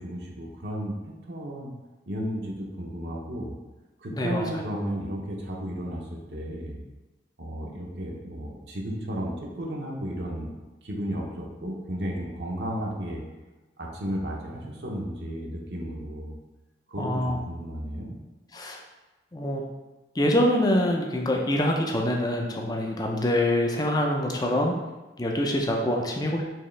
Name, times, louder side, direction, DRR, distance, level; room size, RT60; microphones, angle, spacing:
voice 1, 0.0-1.7 2.1-3.5 4.0-6.8 7.4-10.5 10.8-13.2 13.8-16.4 16.9-18.2, equal, 65° right, -1 dB, 0.7 m, -33 dB
voice 2, 4.1-4.4 17.0-17.4 18.5-18.8 19.3-19.6 20.2-24.7 25.2-26.4, left 1 dB, 20° left, 1 dB, 0.5 m, -25 dB
4.6 x 3.1 x 3.2 m, 1.1 s
head